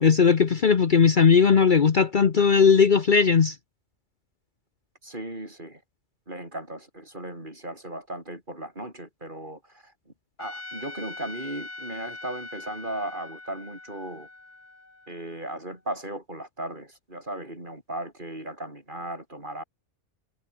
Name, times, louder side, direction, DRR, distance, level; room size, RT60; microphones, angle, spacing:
voice 1, 0.0-3.6, left 6 dB, 45° left, 1.0 m, -18 dB
voice 2, 5.0-5.8 6.3-10.1 10.4-14.3 15.1-19.6, right 1 dB, 40° right, 7.1 m, -37 dB
Trumpet, 10.4-15.6, left 2 dB, 70° left, 4.8 m, -42 dB
omnidirectional pair, 1.2 m